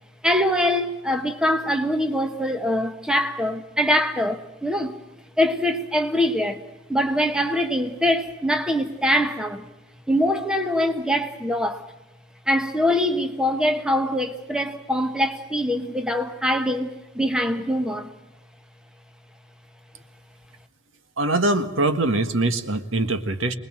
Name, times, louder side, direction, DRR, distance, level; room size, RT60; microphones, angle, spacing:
voice 1, 0.2-5.0 5.4-6.6 6.9-9.7 10.1-11.8 12.5-18.1, equal, 5° right, 1.3 m, -23 dB
voice 2, 21.2-23.5, right 2 dB, 80° right, 1.6 m, -23 dB
25.0 x 20.5 x 7.6 m
head